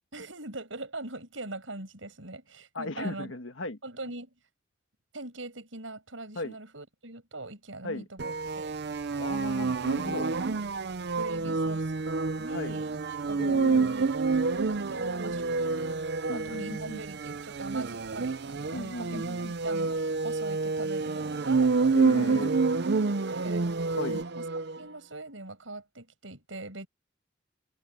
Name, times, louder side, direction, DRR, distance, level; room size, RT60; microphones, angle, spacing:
voice 1, 0.1-3.3 3.8-4.3 5.1-8.8 10.1-10.5 11.1-11.9 12.4-13.0 13.3-14.1 14.7-15.9 16.2-19.2 19.6-22.5 23.0-23.7 24.2-24.5 24.8-26.9, right 2 dB, 90° right, 6.9 m, -41 dB
voice 2, 2.7-3.8 6.4-6.6 7.8-8.1 9.2-10.3 11.4-11.5 12.4-12.8 13.4-13.9 14.9-16.0 16.3-17.0 18.7-19.5 21.9-22.5 24.0-24.2, left 2 dB, 80° left, 1.8 m, -37 dB
sound 1, 8.2-24.8, right 4 dB, 60° right, 0.6 m, -28 dB
head